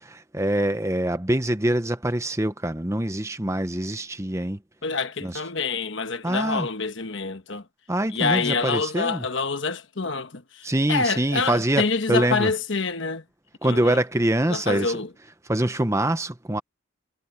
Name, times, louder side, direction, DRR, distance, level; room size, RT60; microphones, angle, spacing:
voice 1, 0.0-4.6 5.2-5.4 6.2-6.7 7.9-9.2 10.6-12.5 13.6-15.0 15.5-16.6, right 1 dB, 15° right, 0.9 m, -24 dB
voice 2, 4.8-7.6 8.1-13.2 13.6-14.0 14.5-15.1, left 4 dB, 60° left, 1.2 m, -27 dB
head